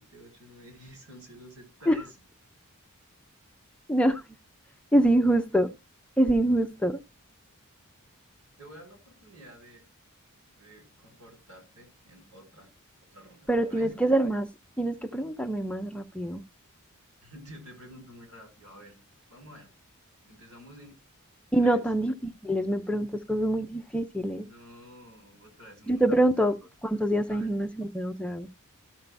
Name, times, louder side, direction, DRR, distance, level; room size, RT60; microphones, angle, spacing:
voice 1, 0.0-2.2 6.7-6.8 8.6-9.8 10.6-12.7 13.0-14.0 17.2-19.0 19.3-19.7 20.3-21.0 21.6-21.8 24.4-26.6 27.3-27.5, equal, 80° right, 4.0 m, -50 dB
voice 2, 3.9-4.2 4.9-5.7 6.2-7.0 13.5-14.5 14.8-16.4 21.5-24.5 25.9-26.5 26.8-28.5, right 1 dB, 5° left, 0.5 m, -25 dB
13.5 x 5.6 x 3.3 m
head